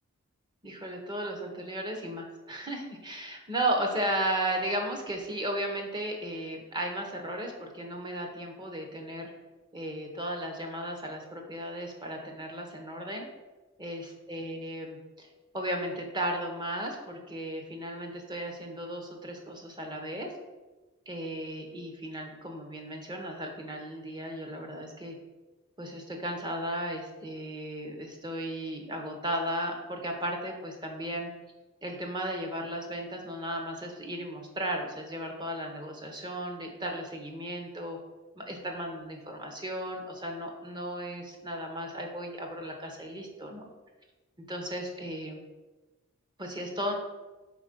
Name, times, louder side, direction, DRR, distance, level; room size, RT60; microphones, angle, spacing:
voice 1, 0.6-9.3 9.7-13.2 13.8-15.3 15.5-20.3 21.1-25.1 25.8-31.3 31.8-38.0 38.3-43.7 44.5-45.4 46.4-46.9, right 1 dB, 20° right, 2 dB, 0.9 m, -35 dB
5.1 x 4.3 x 5.1 m, 1.2 s
head